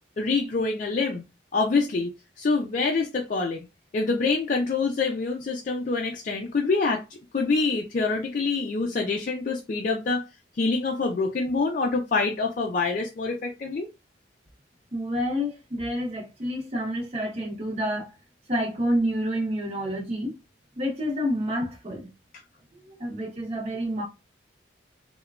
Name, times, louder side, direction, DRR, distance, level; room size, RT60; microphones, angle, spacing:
voice 1, 0.2-1.2 1.5-3.7 3.9-7.0 7.3-10.3 10.6-13.9, left 4 dB, 40° left, 0.3 m, -26 dB
voice 2, 14.9-18.1 18.5-20.4 20.8-22.1 22.7-24.0, equal, 35° right, 0.8 m, -28 dB
3.0 x 2.1 x 2.3 m
head